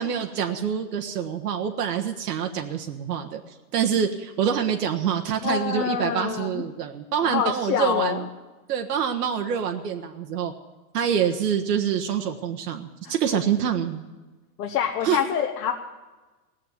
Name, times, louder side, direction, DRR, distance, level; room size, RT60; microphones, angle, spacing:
voice 1, 0.0-8.3 8.7-10.5 10.9-14.0 15.0-15.2, right 8 dB, 80° right, 3 dB, 1.3 m, -26 dB
voice 2, 5.4-6.6 7.2-8.2 13.0-13.1 14.6-15.7, left 8 dB, 80° left, 1 dB, 1.4 m, -26 dB
17.5 x 7.6 x 9.3 m, 1.2 s
hypercardioid pair, 135°, 47 cm